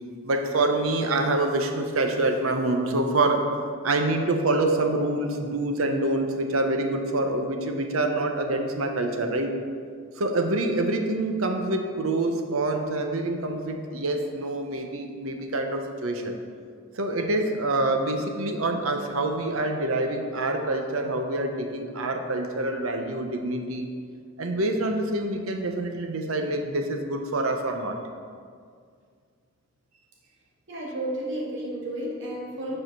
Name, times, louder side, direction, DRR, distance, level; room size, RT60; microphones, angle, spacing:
voice 1, 0.2-3.5 3.8-9.5 10.2-16.4 16.9-23.9 24.4-28.0, right 2 dB, 85° right, 4 dB, 0.8 m, -26 dB
voice 2, 30.7-32.8, right 1 dB, 65° right, -5 dB, 1.9 m, -32 dB
7.5 x 4.9 x 6.0 m, 2.1 s
head